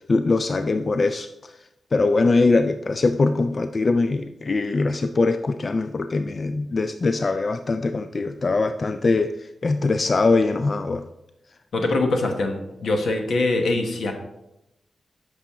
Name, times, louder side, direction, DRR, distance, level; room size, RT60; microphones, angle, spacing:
voice 1, 0.1-1.6 1.9-11.0, left 3 dB, 40° left, 9 dB, 0.3 m, -22 dB
voice 2, 11.7-14.1, left 2 dB, 80° left, 4 dB, 1.2 m, -23 dB
8.5 x 6.2 x 3.6 m, 0.89 s
wide cardioid pair, 90°, 0 cm